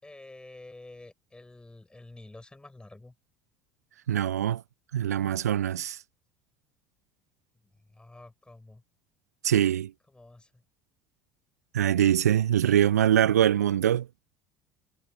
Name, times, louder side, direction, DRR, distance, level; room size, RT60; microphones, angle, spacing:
voice 1, 0.0-3.1 7.6-8.8 10.1-10.6 12.6-12.9, left 2 dB, 10° left, 7.8 m, -49 dB
voice 2, 4.1-4.6 4.9-6.0 9.4-9.9 11.7-14.1, right 11 dB, 75° right, 0.5 m, -23 dB
figure-of-eight pair, 60°, 9 cm